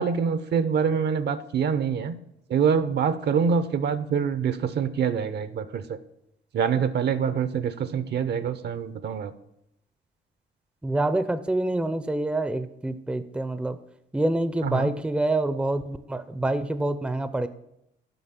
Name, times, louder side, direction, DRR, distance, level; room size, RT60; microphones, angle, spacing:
voice 1, 0.0-2.1 2.5-6.0 6.5-9.3 14.6-14.9, right 6 dB, 55° right, 13 dB, 0.7 m, -25 dB
voice 2, 10.8-13.8 14.1-17.5, right 2 dB, 5° right, 12 dB, 0.5 m, -26 dB
7.8 x 5.8 x 5.7 m, 0.80 s
cardioid pair, 90°, 20 cm